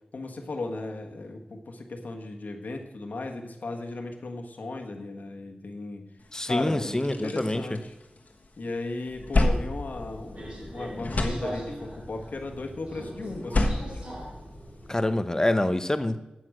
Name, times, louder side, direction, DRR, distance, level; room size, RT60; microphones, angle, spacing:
voice 1, 0.1-6.1 6.4-7.9 8.6-14.0, left 2 dB, 85° left, 3 dB, 1.4 m, -36 dB
sound 1, 6.3-6.4 6.8-8.5 8.8-10.7 10.9-12.0 13.3-14.9, left 2 dB, 65° left, 1.4 m, -29 dB
voice 2, 6.3-7.6 14.9-16.2, left 1 dB, 20° left, 11 dB, 0.9 m, -26 dB
Subway metro underground, 9.8-15.0, equal, 45° right, 4.4 m, -41 dB
9.6 x 8.0 x 7.7 m, 0.96 s
wide cardioid pair, 70°, 3 cm